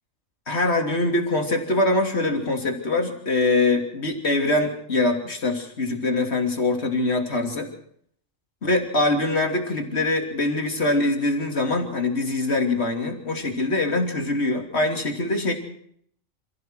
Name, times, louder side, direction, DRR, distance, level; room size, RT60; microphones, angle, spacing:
voice 1, 0.5-7.7 8.6-15.5, left 2 dB, 50° left, 3 dB, 3.3 m, -23 dB
27.5 x 15.0 x 6.3 m, 0.66 s
omnidirectional pair, 1.4 m